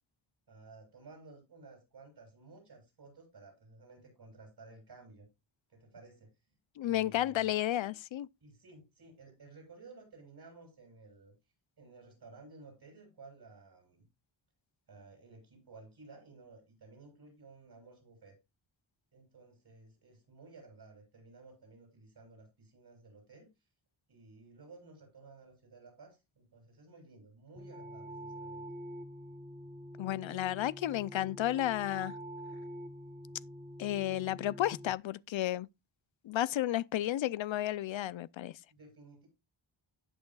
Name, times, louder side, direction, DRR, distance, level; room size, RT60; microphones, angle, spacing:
voice 1, 0.5-5.3 5.7-6.3 6.8-7.5 8.4-11.3 11.8-14.1 14.9-18.4 19.1-23.5 24.1-28.6 38.7-39.3, right 3 dB, 55° right, 7.2 m, -55 dB
voice 2, 6.8-8.3 30.0-32.1 33.8-35.7 36.2-38.5, left 13 dB, 75° left, 0.5 m, -32 dB
sound 1, 27.6-34.9, equal, 15° right, 1.3 m, -46 dB
17.5 x 6.4 x 2.3 m
wide cardioid pair, 110°, 47 cm